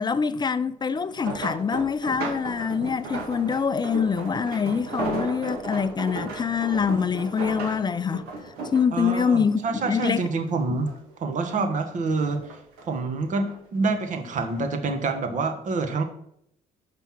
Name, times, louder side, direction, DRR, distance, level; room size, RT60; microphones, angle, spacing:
voice 1, 0.0-8.2 8.7-10.2, left 6 dB, 25° left, 0.5 m, -25 dB
sound 1, 0.9-10.5 10.9-11.8 12.2-13.5 14.3-14.6 15.0-15.1, right 3 dB, 80° right, 2.0 m, -35 dB
voice 2, 8.9-10.9 11.2-12.4 12.8-16.0, right 3 dB, 50° right, 1.5 m, -27 dB
6.1 x 5.5 x 6.0 m
supercardioid pair, 70°, 16 cm